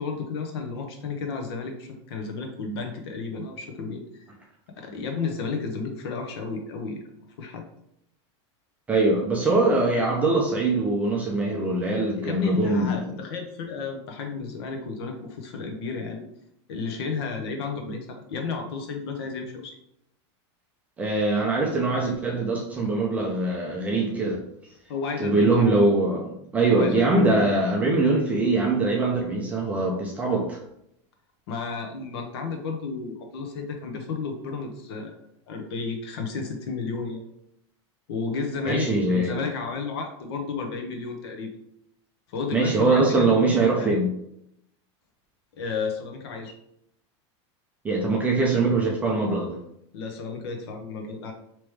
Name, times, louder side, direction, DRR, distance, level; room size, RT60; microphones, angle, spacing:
voice 1, 0.0-4.3 4.8-7.0 7.4-7.6 12.1-16.2 16.7-19.8 24.9-25.7 26.7-27.5 31.5-35.2 35.5-37.2 38.1-41.5 42.3-43.9 45.5-46.5 49.9-51.3, left 4 dB, 60° left, 3 dB, 0.8 m, -32 dB
voice 2, 8.9-13.0 21.0-24.4 25.2-30.6 38.7-39.4 42.5-44.1 47.8-49.6, right 2 dB, 10° right, -2 dB, 0.4 m, -22 dB
3.4 x 2.9 x 3.2 m, 0.74 s
supercardioid pair, 175°, 15 cm